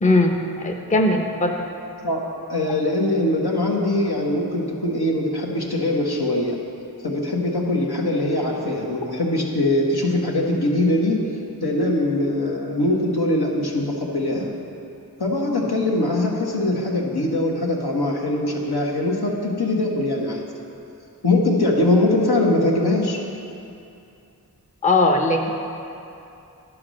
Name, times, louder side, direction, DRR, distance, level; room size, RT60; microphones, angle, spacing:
voice 1, 0.0-1.6 24.8-25.5, left 2 dB, 20° left, 2 dB, 0.6 m, -19 dB
voice 2, 2.5-6.6 7.0-11.2 11.6-14.5 15.2-20.4 21.2-23.2, left 1 dB, 75° left, -2 dB, 1.3 m, -22 dB
10.0 x 4.8 x 6.3 m, 2.7 s
wide cardioid pair, 45°, 39 cm